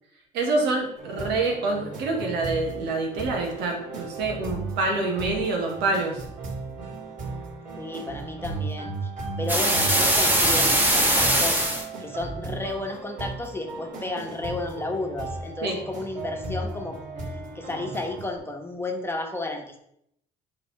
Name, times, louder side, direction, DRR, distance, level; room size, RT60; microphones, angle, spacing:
voice 1, 0.3-6.2 15.6-15.8, right 3 dB, 85° right, 1 dB, 1.9 m, -26 dB
sound 1, 1.0-18.4, right 3 dB, 50° right, 3.0 m, -36 dB
voice 2, 7.8-9.1 9.4-11.6 12.0-17.0 17.5-19.8, left 2 dB, 15° left, 2 dB, 1.2 m, -32 dB
sound 2, 9.5-11.8, right 1 dB, 10° right, 1.4 m, -21 dB
10.0 x 4.1 x 3.5 m, 0.74 s
cardioid pair, 110°, 17 cm